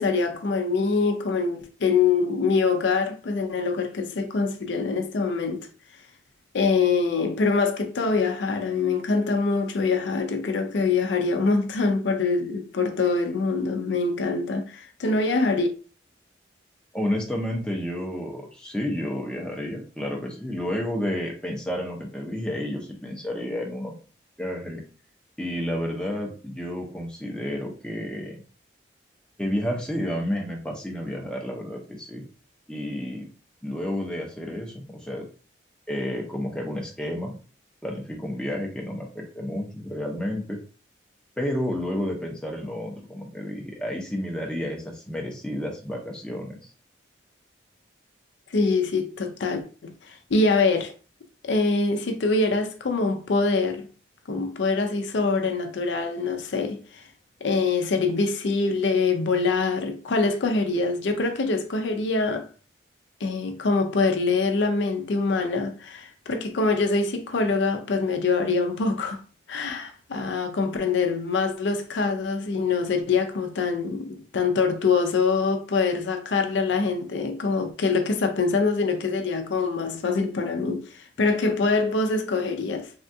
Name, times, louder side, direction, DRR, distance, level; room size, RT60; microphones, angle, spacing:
voice 1, 0.0-5.7 6.5-15.7 48.5-50.9 51.4-53.9 54.3-56.8 57.4-62.5 63.2-69.2 69.5-82.9, left 4 dB, 75° left, 0.5 m, -24 dB
voice 2, 16.9-23.9 24.4-24.8 25.4-28.4 29.4-32.3 32.7-33.3 33.6-35.2 35.9-37.3 37.8-40.6 41.4-46.7, left 1 dB, 5° left, 0.5 m, -31 dB
3.4 x 2.3 x 2.6 m
head